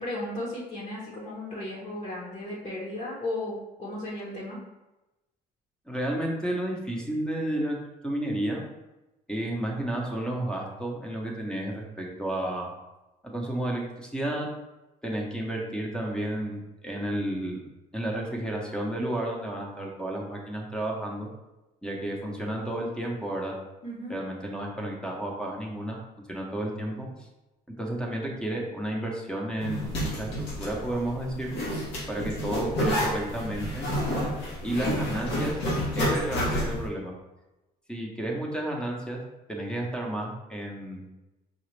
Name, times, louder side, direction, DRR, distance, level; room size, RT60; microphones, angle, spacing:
voice 1, 0.0-4.6 23.8-24.1, left 1 dB, 40° left, -4 dB, 1.0 m, -35 dB
voice 2, 5.9-7.8 8.0-8.6 9.3-12.7 13.2-14.5 15.0-17.6 17.9-21.3 21.8-23.5 24.1-26.0 26.3-27.3 27.8-30.3 30.6-31.5 32.1-33.9 34.6-35.6 36.0-37.1 37.9-39.2 39.5-41.1, right 1 dB, 5° left, -1 dB, 0.7 m, -31 dB
Zipper (clothing), 29.6-36.8, equal, 90° left, 1.3 m, -29 dB
4.9 x 2.4 x 3.1 m, 1.0 s
cardioid pair, 110°, 17 cm